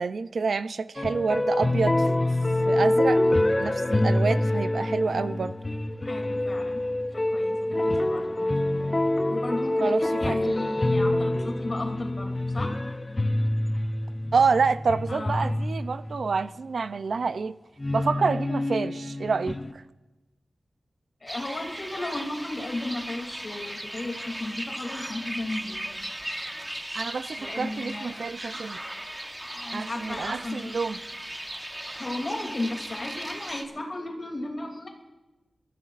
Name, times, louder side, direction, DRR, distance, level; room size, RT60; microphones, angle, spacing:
voice 1, 0.0-2.1 2.7-3.3 3.6-5.5 9.8-10.0 10.3-10.4 14.3-17.6 17.9-19.8 26.9-28.8 29.7-31.0, right 4 dB, 70° right, 12 dB, 0.5 m, -27 dB
sound 1, 1.0-16.4 17.8-19.7, left 1 dB, 20° left, 0.5 m, -26 dB
voice 2, 6.0-6.8 7.1-8.2 9.3-12.8 15.1-15.5 21.2-25.8 27.4-28.2 29.5-30.7 32.0-34.9, left 2 dB, 35° left, 1 dB, 2.8 m, -34 dB
sound 2, 21.3-33.6, right 1 dB, 10° right, 1.1 m, -37 dB
27.5 x 14.5 x 2.5 m, 1.1 s
wide cardioid pair, 125°, 0 cm